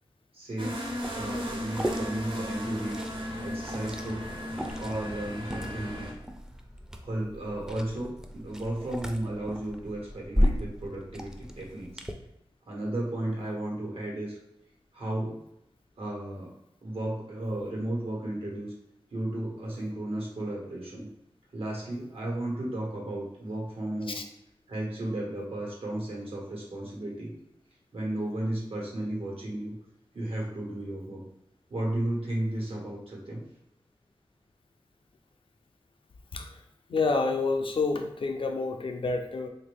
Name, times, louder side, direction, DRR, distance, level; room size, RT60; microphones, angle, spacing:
voice 1, 0.3-0.9 1.1-3.0 3.4-4.3 4.7-6.1 7.0-12.0 12.7-14.4 14.9-15.4 16.0-16.5 16.8-18.7 19.1-21.1 21.5-24.2 24.7-27.3 27.9-29.8 30.1-31.2 31.7-33.4, right 1 dB, 80° right, -2 dB, 1.2 m, -34 dB
sound 1, 0.6-6.1, equal, 60° right, 0.9 m, -35 dB
Liquid, 1.0-12.1, equal, 5° right, 0.4 m, -35 dB
voice 2, 36.9-39.5, left 3 dB, 65° left, 4 dB, 0.5 m, -28 dB
3.3 x 2.6 x 3.4 m, 0.82 s
wide cardioid pair, 60°, 9 cm